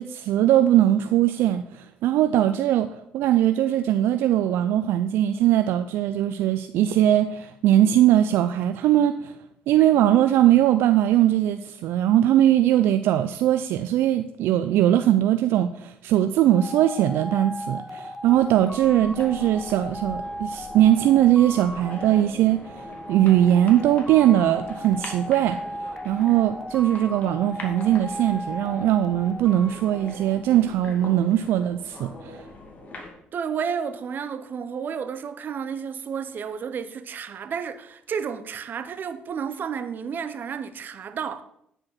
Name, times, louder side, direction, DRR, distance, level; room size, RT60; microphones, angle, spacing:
voice 1, 0.0-2.9 3.1-9.3 9.7-22.8 23.1-25.6 26.0-32.4, right 12 dB, 75° right, 0.4 m, -20 dB
sound 1, 16.5-30.9, equal, 5° left, 1.1 m, -37 dB
sound 2, 18.2-33.1, left 2 dB, 40° left, 2.4 m, -42 dB
voice 2, 33.3-41.4, right 7 dB, 55° right, 0.9 m, -31 dB
9.8 x 5.0 x 5.9 m
supercardioid pair, 60°, 4 cm